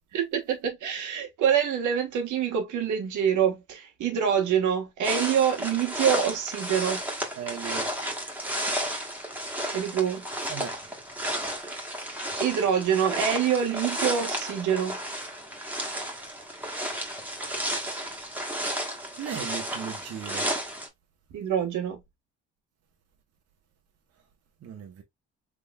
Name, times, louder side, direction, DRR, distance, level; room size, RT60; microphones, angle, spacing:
voice 1, 0.1-7.0 9.7-10.2 12.4-15.0 21.3-22.0, right 8 dB, 75° right, 1.3 m, -26 dB
sound 1, 5.0-20.9, right 1 dB, 5° right, 1.1 m, -32 dB
voice 2, 7.4-7.9 10.5-10.7 19.2-20.5 24.6-25.0, right 9 dB, 55° right, 0.9 m, -37 dB
3.5 x 3.0 x 2.2 m
cardioid pair, 90°, 30 cm